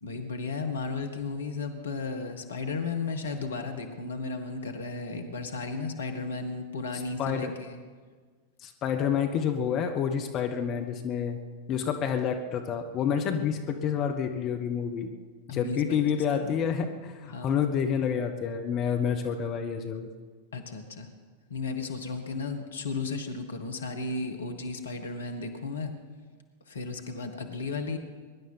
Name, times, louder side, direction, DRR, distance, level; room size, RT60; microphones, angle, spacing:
voice 1, 0.0-7.8 15.5-16.6 17.3-17.6 20.5-21.1 21.5-25.9 26.7-28.0, left 4 dB, 70° left, 6 dB, 1.7 m, -34 dB
voice 2, 6.9-7.5 8.6-11.4 11.7-15.1 15.5-20.1, left 7 dB, 35° left, 5 dB, 1.3 m, -29 dB
23.0 x 11.0 x 5.7 m, 1.5 s
figure-of-eight pair, 90°, 0 cm